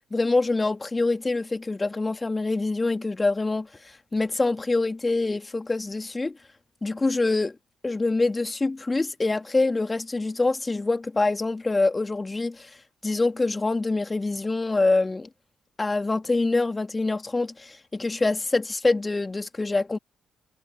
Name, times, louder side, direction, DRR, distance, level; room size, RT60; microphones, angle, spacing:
voice 1, 0.1-6.4 6.8-7.6 7.8-12.7 13.0-15.3 15.8-20.0, left 3 dB, 25° left, 2.7 m, -25 dB
figure-of-eight pair, 45°, 0 cm